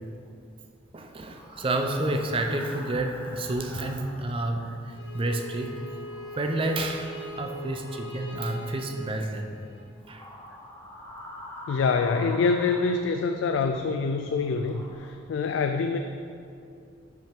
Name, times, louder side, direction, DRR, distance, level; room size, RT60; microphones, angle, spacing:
voice 1, 0.9-5.8 6.3-9.6 10.1-10.3, right 2 dB, 30° right, 4 dB, 0.5 m, -30 dB
sound 1, 1.3-4.8 5.1-9.1 10.0-13.6 14.1-15.1, left 1 dB, 15° left, 0.6 m, -46 dB
Bowed string instrument, 4.9-9.8, equal, 70° left, 1.0 m, -41 dB
voice 2, 11.7-16.0, left 4 dB, 85° left, 6 dB, 0.3 m, -25 dB
6.2 x 4.9 x 4.5 m, 2.4 s
head